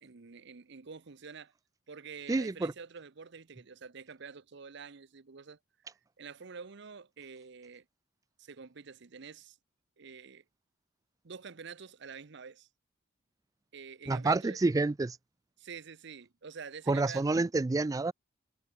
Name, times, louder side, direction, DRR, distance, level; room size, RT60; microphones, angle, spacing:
voice 1, 0.0-1.5 1.9-5.6 5.8-7.8 8.4-9.6 10.0-10.4 11.2-12.7 13.7-14.6 15.6-17.4, right 5 dB, 65° right, 0.8 m, -47 dB
voice 2, 2.3-2.7 14.1-15.2 16.9-18.1, right 3 dB, 20° right, 0.3 m, -28 dB
head